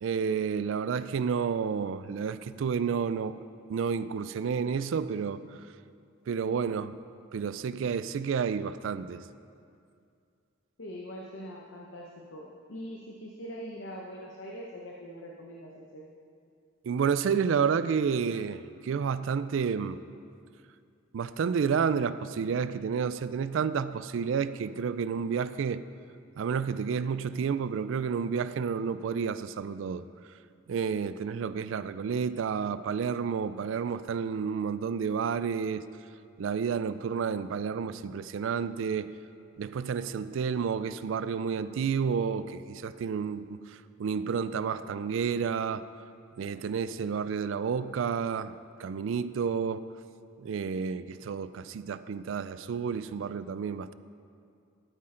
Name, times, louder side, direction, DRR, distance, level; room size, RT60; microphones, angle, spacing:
voice 1, 0.0-3.4 3.7-5.6 6.3-6.9 7.3-9.2 16.8-20.0 21.1-25.8 26.4-30.0 30.7-35.8 36.4-39.1 39.6-45.8 46.4-49.9 50.4-53.9, right 6 dB, 70° right, 14 dB, 0.3 m, -30 dB
voice 2, 10.8-16.1, equal, 65° left, -1 dB, 0.9 m, -43 dB
12.5 x 8.5 x 3.8 m, 2.4 s
head